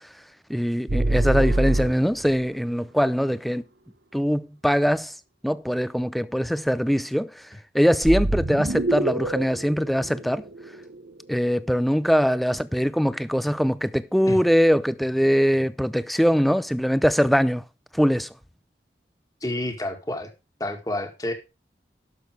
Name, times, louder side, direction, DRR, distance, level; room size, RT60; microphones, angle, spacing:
voice 1, 0.5-3.6 4.1-5.1 5.4-7.5 7.7-10.4 11.3-17.6 17.9-18.3, equal, ahead, 0.4 m, -22 dB
sound 1, 0.9-2.4 8.0-11.1, right 2 dB, 75° right, 1.0 m, -25 dB
voice 2, 19.4-20.3 20.6-21.3, left 1 dB, 20° left, 1.9 m, -29 dB
12.0 x 6.4 x 4.7 m
head